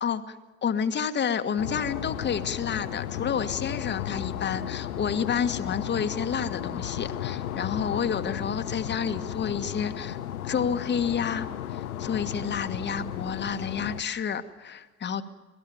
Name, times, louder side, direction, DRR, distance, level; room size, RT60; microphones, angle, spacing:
voice 1, 0.0-10.2 10.4-15.2, left 7 dB, 25° left, 8 dB, 1.5 m, -30 dB
sound 1, 1.6-14.0, left 11 dB, 80° left, 1.1 m, -34 dB
26.0 x 18.0 x 7.0 m, 1.3 s
hypercardioid pair, 75°, 43 cm